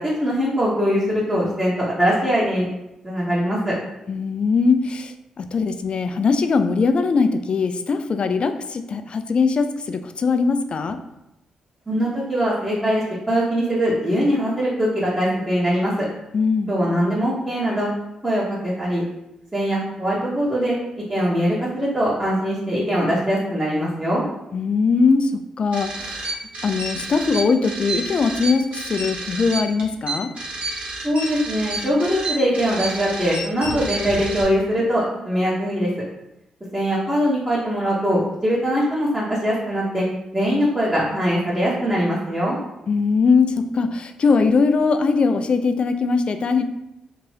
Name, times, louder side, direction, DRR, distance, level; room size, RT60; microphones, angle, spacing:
voice 1, 0.0-2.7 3.0-3.7 11.9-16.1 16.7-17.9 18.2-19.0 19.5-24.2 31.0-35.9 36.7-40.0 40.3-42.6, equal, 15° right, -7 dB, 1.0 m, -22 dB
voice 2, 4.1-11.0 16.3-16.7 24.5-26.4 26.6-30.3 42.9-46.6, left 4 dB, 50° left, 8 dB, 0.3 m, -21 dB
sound 1, 25.7-34.4, right 2 dB, 55° right, 1.0 m, -30 dB
2.8 x 2.5 x 3.2 m, 0.88 s
hypercardioid pair, 45°, 2 cm